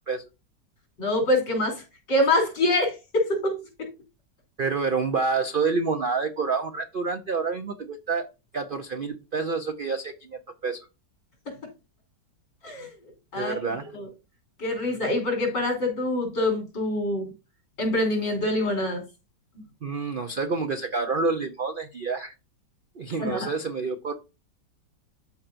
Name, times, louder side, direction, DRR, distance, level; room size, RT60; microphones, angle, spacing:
voice 1, 1.0-3.9 11.5-11.6 12.6-12.9 13.3-13.6 13.9-14.1 14.6-17.3 17.8-19.1 23.2-23.5, left 1 dB, 85° left, 3.8 m, -25 dB
voice 2, 4.6-8.3 8.5-10.9 13.3-13.9 19.8-22.3 23.0-24.2, right 4 dB, 75° right, 0.4 m, -28 dB
12.5 x 4.4 x 2.5 m
omnidirectional pair, 1.9 m